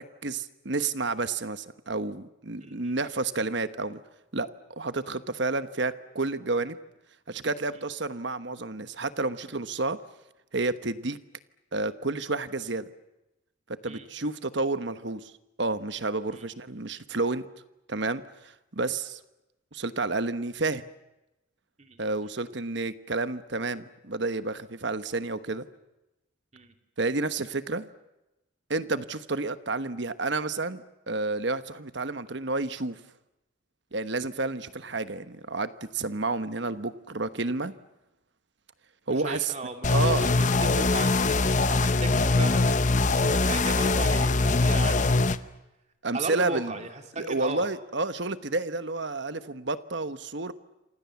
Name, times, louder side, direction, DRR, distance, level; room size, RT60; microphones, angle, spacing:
voice 1, 0.0-4.0 4.3-4.5 4.8-6.8 7.3-10.0 10.5-11.2 11.7-12.9 13.8-15.2 15.6-17.5 17.9-19.2 19.7-20.9 22.0-25.6 27.0-27.9 28.7-33.0 33.9-37.7 39.1-39.5 39.9-40.3 46.0-46.7 47.2-50.5, right 3 dB, 55° right, 12 dB, 1.2 m, -30 dB
voice 2, 2.6-3.0 7.7-7.9 13.9-14.1 16.3-16.4 21.8-22.1 26.5-26.7 39.2-45.5 46.1-47.6, right 2 dB, 35° right, 5 dB, 2.7 m, -37 dB
sound 1, 39.8-45.4, left 3 dB, 35° left, 0.8 m, -23 dB
28.0 x 26.0 x 7.2 m, 0.96 s
head